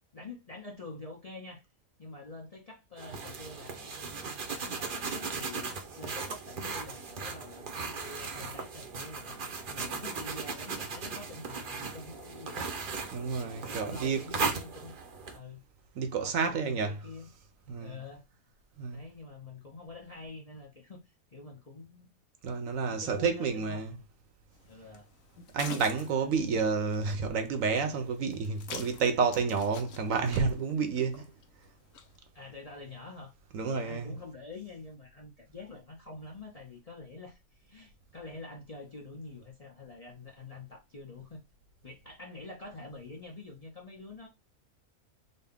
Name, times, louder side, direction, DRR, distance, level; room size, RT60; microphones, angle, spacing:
voice 1, 0.0-1.6 2.0-9.4 9.7-12.7 13.4-14.9 15.3-15.6 16.1-17.3 17.8-18.2 18.9-22.1 22.9-23.9 24.6-25.1 26.1-26.6 32.3-33.3 33.6-41.4 41.8-44.3, left 3 dB, 35° left, 0.6 m, -46 dB
sound 1, 3.0-15.4, right 4 dB, 45° right, 0.7 m, -37 dB
voice 2, 13.1-14.3 16.0-17.0 17.7-18.0 18.8-19.0 22.4-24.0 25.5-31.3 33.5-34.2, right 5 dB, 70° right, 1.1 m, -30 dB
sound 2, 24.5-32.2, left 6 dB, 70° left, 1.1 m, -48 dB
4.0 x 2.2 x 3.5 m
omnidirectional pair, 1.5 m